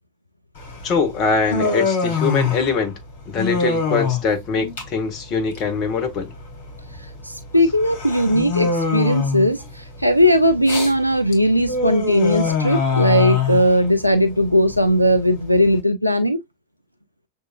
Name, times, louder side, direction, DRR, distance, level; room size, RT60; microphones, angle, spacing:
Human voice, 0.6-15.8, left 5 dB, 55° left, 2.2 m, -25 dB
voice 1, 0.8-2.9 3.3-6.3, left 4 dB, 35° left, 1.2 m, -22 dB
voice 2, 7.2-16.4, equal, 90° left, 0.4 m, -18 dB
6.6 x 2.7 x 2.3 m
figure-of-eight pair, 90°, 0 cm